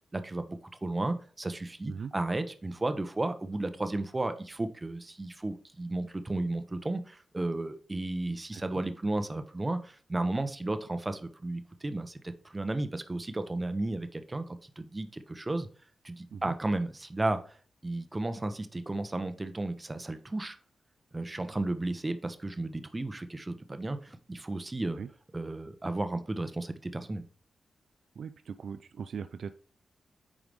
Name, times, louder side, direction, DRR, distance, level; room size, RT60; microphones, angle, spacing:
voice 1, 0.1-12.2 12.5-15.7 16.0-17.4 17.8-20.6 21.1-25.0 25.3-27.2, right 2 dB, 20° right, 0.8 m, -33 dB
voice 2, 28.2-29.5, right 6 dB, 70° right, 0.4 m, -40 dB
9.0 x 4.8 x 3.4 m
wide cardioid pair, 135°, 0 cm